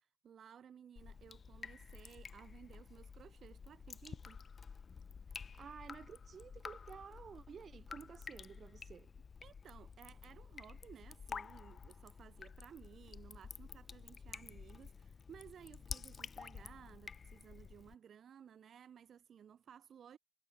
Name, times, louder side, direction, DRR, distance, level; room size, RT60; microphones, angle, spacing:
voice 1, 0.0-4.4 9.4-20.2, right 8 dB, 75° right, 2.7 m, -58 dB
Drip, 1.0-17.9, left 5 dB, 50° left, 1.3 m, -51 dB
voice 2, 5.3-9.1, right 7 dB, 60° right, 0.7 m, -53 dB
cardioid pair, 100°, 0 cm